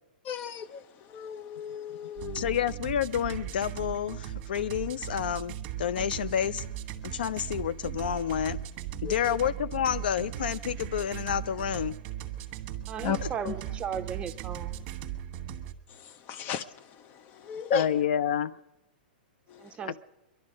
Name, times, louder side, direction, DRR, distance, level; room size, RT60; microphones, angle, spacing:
voice 1, 0.2-2.5 9.0-9.4 13.0-13.2 13.4-13.6 15.9-17.9 19.5-19.8, left 7 dB, 35° left, 0.8 m, -35 dB
sound 1, 2.2-15.7, right 11 dB, 40° right, 1.3 m, -38 dB
voice 2, 2.3-6.6 7.0-8.6 9.0-11.9 13.2-13.3 17.7-18.6 19.8-20.0, left 9 dB, 75° left, 0.5 m, -29 dB
voice 3, 12.9-14.8 19.6-20.0, right 7 dB, 20° right, 0.8 m, -36 dB
22.5 x 11.5 x 5.1 m
hypercardioid pair, 120°, 5 cm